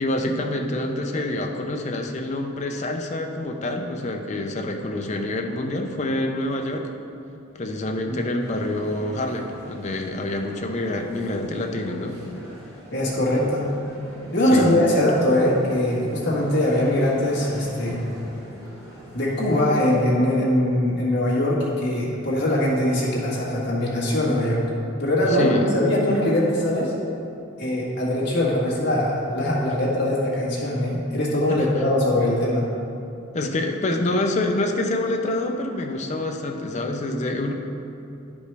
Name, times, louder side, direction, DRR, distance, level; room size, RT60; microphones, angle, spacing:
voice 1, 0.0-6.9 7.6-12.2 14.5-14.7 25.3-25.7 31.5-31.7 33.3-37.5, left 1 dB, 35° left, 3 dB, 0.5 m, -26 dB
sound 1, 8.4-20.2, right 1 dB, 15° right, 1.5 m, -42 dB
voice 2, 12.9-13.7 14.3-18.0 19.1-24.6 25.0-26.9 27.6-32.6, left 1 dB, 55° left, -6 dB, 1.8 m, -22 dB
10.5 x 5.2 x 3.4 m, 2.8 s
head